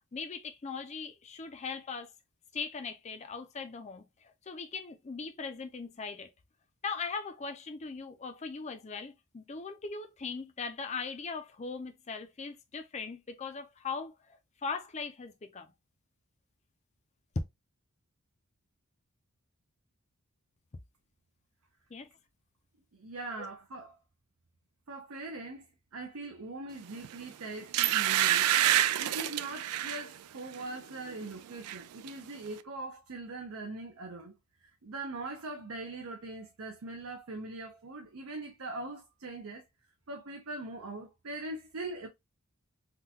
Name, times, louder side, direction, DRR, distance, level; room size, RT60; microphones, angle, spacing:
voice 1, 0.1-2.1 2.5-6.3 6.8-15.7 21.9-22.1, left 5 dB, 30° left, 0.5 m, -40 dB
voice 2, 22.9-24.0 24.9-25.7 25.9-34.3 34.8-39.6 40.1-42.1, right 2 dB, 65° right, 0.7 m, -41 dB
sound 1, 27.0-27.2 27.7-30.1 30.5-30.7 31.1-31.8 32.1-32.2, right 12 dB, 85° right, 0.3 m, -27 dB
3.7 x 2.3 x 2.8 m
head